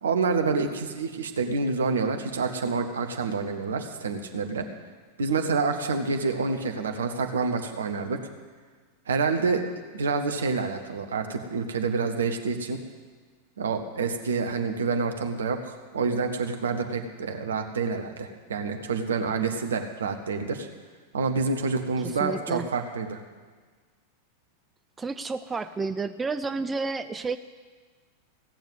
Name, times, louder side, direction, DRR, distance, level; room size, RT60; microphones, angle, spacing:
voice 1, 0.0-4.7 5.2-8.2 9.1-9.6 9.9-12.8 13.6-20.7 21.1-23.2, right 4 dB, 70° right, 5 dB, 1.2 m, -28 dB
voice 2, 22.0-22.7 25.0-27.4, right 4 dB, 15° right, 11 dB, 0.4 m, -31 dB
16.5 x 7.0 x 8.0 m, 1.5 s
figure-of-eight pair, 90°, 0 cm